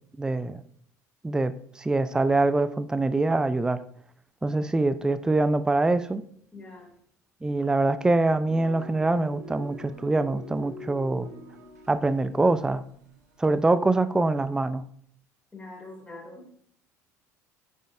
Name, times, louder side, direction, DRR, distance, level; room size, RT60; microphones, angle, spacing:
voice 1, 0.2-0.6 1.2-3.8 4.4-6.2 7.4-11.3 11.9-12.8 13.4-14.8, right 2 dB, 10° right, 0.4 m, -24 dB
voice 2, 6.5-6.9 15.5-16.5, left 2 dB, 15° left, 2.7 m, -43 dB
sound 1, 8.5-13.7, left 2 dB, 75° right, 1.6 m, -46 dB
9.1 x 7.1 x 2.6 m
figure-of-eight pair, 60°, 9 cm